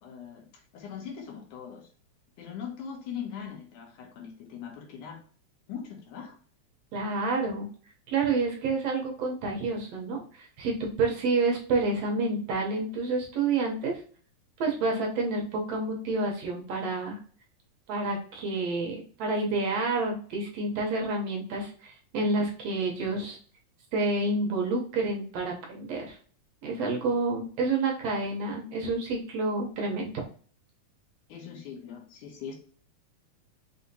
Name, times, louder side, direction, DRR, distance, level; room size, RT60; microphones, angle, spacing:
voice 1, 0.0-1.9 2.4-5.2 5.7-6.4 31.3-32.6, left 7 dB, 90° left, 1 dB, 2.6 m, -41 dB
voice 2, 6.9-7.7 8.1-14.0 14.6-17.2 17.9-23.4 23.9-26.2 26.6-30.1, right 3 dB, 70° right, 0 dB, 1.8 m, -29 dB
5.7 x 2.8 x 2.7 m, 0.43 s
omnidirectional pair, 3.4 m